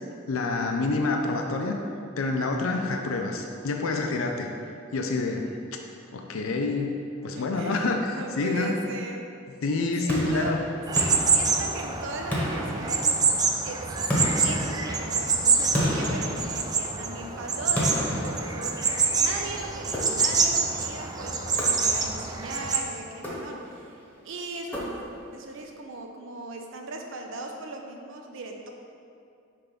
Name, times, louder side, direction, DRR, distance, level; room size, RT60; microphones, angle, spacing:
voice 1, 0.3-1.7 2.2-4.5 4.9-5.5 6.1-7.0 7.2-8.7 9.6-10.6, left 3 dB, 75° left, 3 dB, 0.5 m, -27 dB
voice 2, 7.3-9.3 10.0-10.6 11.3-13.1 13.6-24.0 24.2-25.0 25.3-28.7, right 2 dB, 65° right, 2 dB, 0.6 m, -38 dB
sound 1, 10.1-11.9 12.3-13.5 14.1-17.1 17.7-19.2 19.9-20.6 21.6-22.3 23.1-23.9 24.7-25.4, equal, 10° left, 1.1 m, -31 dB
sound 2, 10.9-22.8, right 4 dB, 20° right, 0.3 m, -26 dB
5.9 x 3.4 x 5.0 m, 2.5 s
head